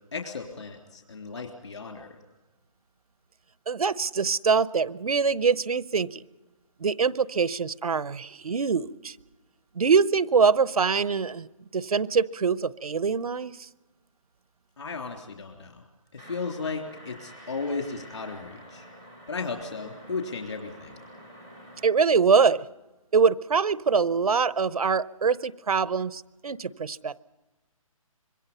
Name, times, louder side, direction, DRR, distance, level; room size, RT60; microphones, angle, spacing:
voice 1, 0.1-2.2 14.8-15.8 16.1-18.9 19.3-21.0, left 4 dB, 55° left, 3 dB, 3.4 m, -35 dB
voice 2, 3.7-6.2 6.8-9.2 9.7-13.7 21.8-22.7 23.1-27.1, right 5 dB, 85° right, 18 dB, 0.9 m, -24 dB
sound 1, 16.2-21.8, equal, 5° left, 0.7 m, -48 dB
26.0 x 22.5 x 5.5 m, 1.1 s
hypercardioid pair, 180°, 18 cm